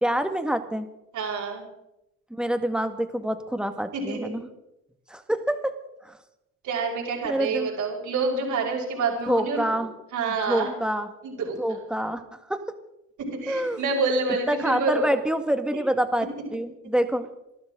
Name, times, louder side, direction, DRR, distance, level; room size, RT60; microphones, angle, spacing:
voice 1, 0.0-0.9 2.4-4.4 5.1-5.7 6.0-6.2 7.2-7.7 9.3-9.9 10.5-11.1 11.6-12.6 13.5-13.8 14.5-17.3, right 1 dB, 5° right, 8 dB, 1.8 m, -26 dB
voice 2, 1.1-1.6 3.9-4.3 6.6-9.8 10.1-10.7 11.2-11.6 13.2-15.1, right 4 dB, 75° right, -1 dB, 6.6 m, -27 dB
26.0 x 12.5 x 3.9 m, 0.88 s
cardioid pair, 90°, 30 cm